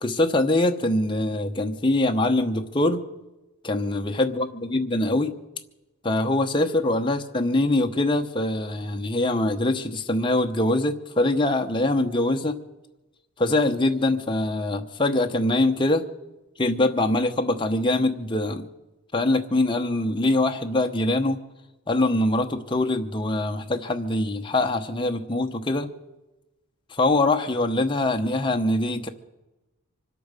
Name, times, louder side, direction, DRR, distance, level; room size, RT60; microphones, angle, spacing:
voice 1, 0.0-3.0 3.6-5.3 6.0-12.6 13.4-16.0 16.6-18.7 19.1-21.4 21.9-25.9 26.9-29.1, left 2 dB, 20° left, 4 dB, 0.9 m, -23 dB
24.5 x 8.5 x 6.7 m, 1.0 s
head